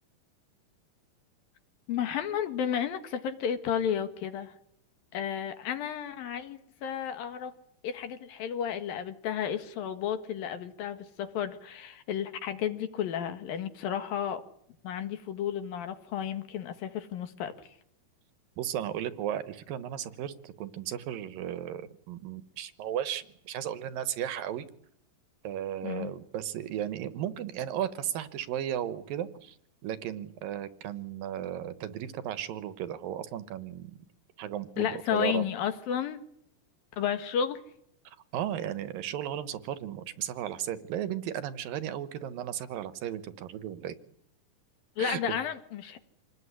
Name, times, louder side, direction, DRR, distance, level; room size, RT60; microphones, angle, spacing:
voice 1, 1.9-4.5 5.1-7.5 7.8-14.4 14.8-17.7 25.8-26.2 34.8-36.2 36.9-37.6 45.0-46.0, left 9 dB, 70° left, 10 dB, 3.5 m, -32 dB
voice 2, 18.6-24.7 25.4-29.6 29.8-34.0 34.4-35.4 38.0-43.9 45.0-45.2, right 10 dB, 75° right, 13 dB, 2.8 m, -35 dB
27.0 x 19.5 x 9.9 m, 0.72 s
omnidirectional pair, 4.4 m